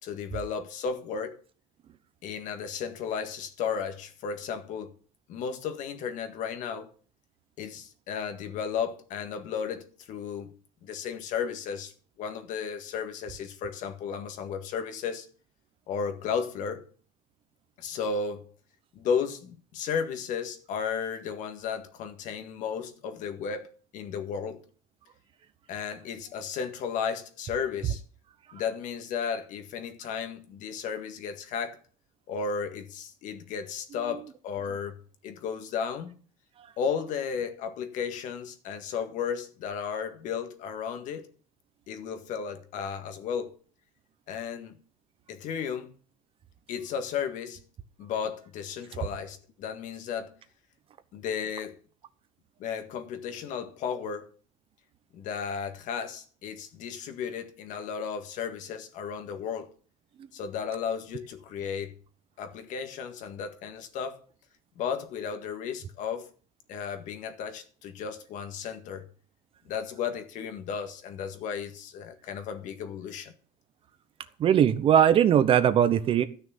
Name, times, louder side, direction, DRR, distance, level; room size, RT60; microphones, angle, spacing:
voice 1, 0.0-1.4 2.2-5.0 5.3-6.9 7.6-10.5 10.8-11.9 12.2-15.3 15.9-16.9 17.8-18.5 19.0-24.6 25.7-28.0 28.5-31.8 32.3-36.1 36.8-41.3 41.9-43.6 44.3-44.8 45.3-45.9 46.7-47.6 48.0-50.3 51.1-51.8 52.6-54.3 55.1-59.7 60.3-61.9 62.4-64.2 64.8-66.3 66.7-69.1 69.7-73.3, left 6 dB, 55° left, 1.8 m, -34 dB
voice 2, 74.4-76.2, right 9 dB, 35° right, 0.9 m, -20 dB
13.5 x 6.4 x 7.2 m
cardioid pair, 145°, 16 cm